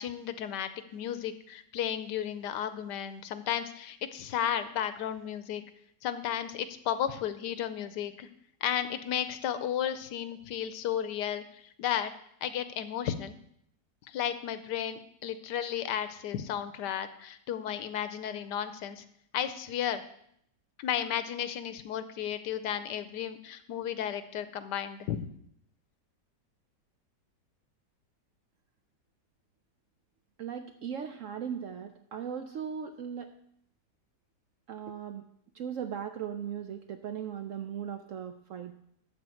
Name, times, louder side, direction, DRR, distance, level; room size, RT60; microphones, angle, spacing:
voice 1, 0.0-5.6 6.0-8.3 8.6-12.1 12.4-13.4 14.1-19.0 19.3-20.0 20.8-25.2, left 10 dB, 80° left, 11 dB, 1.3 m, -33 dB
voice 2, 30.4-33.3 34.7-35.2 35.5-38.7, right 8 dB, 70° right, 7 dB, 0.7 m, -38 dB
12.0 x 4.3 x 7.6 m, 0.72 s
omnidirectional pair, 1.9 m